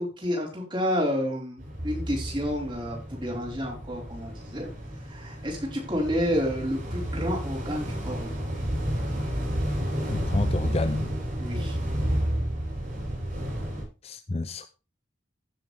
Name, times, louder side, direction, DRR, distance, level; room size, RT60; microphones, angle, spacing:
voice 1, 0.0-4.7 5.0-8.5 11.4-11.8, equal, 25° right, 4.7 m, -30 dB
sound 1, 1.6-13.8, equal, 40° right, 7.5 m, -31 dB
voice 2, 10.1-11.0 14.0-14.7, left 2 dB, 30° left, 0.5 m, -29 dB
15.5 x 7.3 x 3.6 m
head